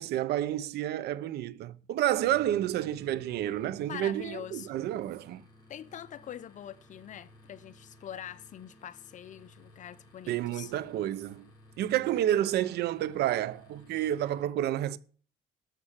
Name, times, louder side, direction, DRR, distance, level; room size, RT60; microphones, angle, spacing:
voice 1, 0.0-5.4 10.3-11.5 11.8-15.0, right 12 dB, 75° right, 0.8 m, -30 dB
sound 1, 2.2-14.4, left 1 dB, 25° left, 6.5 m, -57 dB
voice 2, 3.9-4.7 5.7-10.7, left 10 dB, 50° left, 0.7 m, -44 dB
13.0 x 6.2 x 7.4 m
cardioid pair, 110°, 17 cm